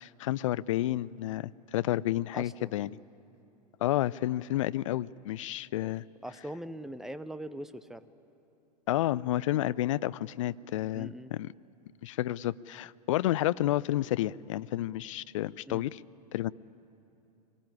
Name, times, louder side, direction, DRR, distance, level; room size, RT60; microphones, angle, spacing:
voice 1, 0.0-2.9 3.8-6.0 8.9-11.5 12.0-16.0 16.3-16.5, left 14 dB, 50° left, 18 dB, 0.5 m, -30 dB
voice 2, 2.3-2.8 5.8-5.9 6.2-8.1 10.9-11.3 15.7-15.9, right 1 dB, ahead, 14 dB, 0.6 m, -41 dB
23.0 x 20.0 x 9.6 m, 2.9 s
figure-of-eight pair, 100°, 21 cm